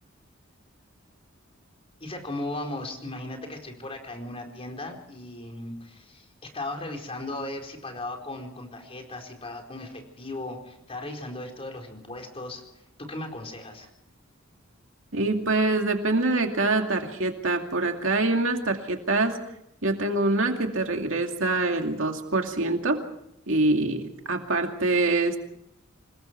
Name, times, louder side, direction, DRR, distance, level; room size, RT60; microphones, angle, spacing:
voice 1, 2.0-12.6 13.0-13.9, left 2 dB, 30° left, 3 dB, 4.5 m, -37 dB
voice 2, 15.1-19.4 19.8-23.0 23.5-25.4, right 2 dB, 70° right, 4 dB, 2.5 m, -25 dB
27.5 x 20.5 x 4.6 m, 0.77 s
head